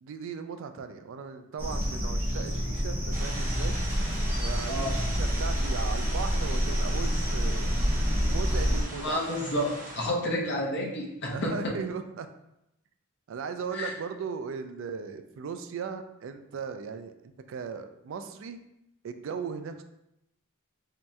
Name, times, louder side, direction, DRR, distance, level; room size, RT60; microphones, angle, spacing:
voice 1, 0.0-3.8 4.4-7.8 8.3-9.3 10.1-10.2 11.3-12.3 13.3-18.6 19.0-19.8, right 6 dB, 60° right, 8 dB, 0.3 m, -37 dB
sound 1, 1.6-8.8, equal, 10° right, 0.7 m, -28 dB
sound 2, 3.1-10.1, right 1 dB, 35° right, 0.8 m, -40 dB
voice 2, 4.7-5.1 9.0-11.7 13.7-13.9, left 1 dB, 55° left, -2 dB, 0.7 m, -30 dB
3.1 x 2.8 x 3.4 m, 0.85 s
head